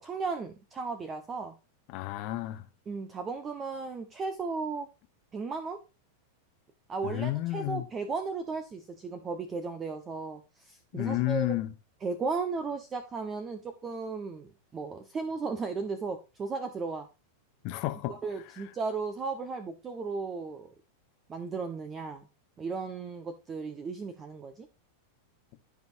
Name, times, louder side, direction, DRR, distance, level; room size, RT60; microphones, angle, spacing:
voice 1, 0.0-1.5 2.9-4.9 5.3-5.8 6.9-11.5 12.0-17.1 18.1-20.7 21.3-22.3 22.6-24.7, right 4 dB, 20° right, 1.2 m, -35 dB
voice 2, 1.9-2.7 7.0-7.8 10.9-11.7 17.6-18.2, left 16 dB, 45° left, 1.0 m, -31 dB
15.0 x 5.4 x 2.7 m
figure-of-eight pair, 90°, 0 cm